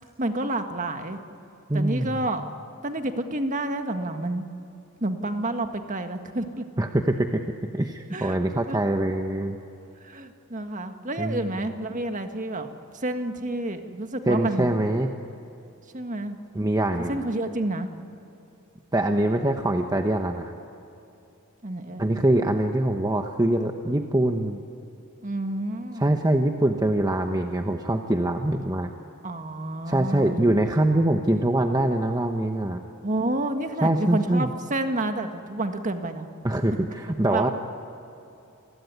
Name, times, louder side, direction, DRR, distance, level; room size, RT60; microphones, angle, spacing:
voice 1, 0.2-1.2 1.7-2.4 2.8-4.5 5.0-6.6 8.1-8.4 8.7-8.8 10.0-12.7 12.9-14.8 15.9-16.4 17.1-17.9 21.6-22.1 25.2-26.1 29.2-30.4 33.0-36.3 37.3-37.5, right 1 dB, 35° right, 6 dB, 1.7 m, -29 dB
voice 2, 1.7-2.2 6.8-7.4 7.7-9.6 11.2-11.5 14.3-15.1 16.5-17.2 18.9-20.5 22.0-24.6 26.0-28.9 29.9-32.8 33.8-34.5 36.4-37.5, right 1 dB, 20° right, 4 dB, 1.0 m, -24 dB
28.5 x 21.0 x 9.5 m, 2.8 s
head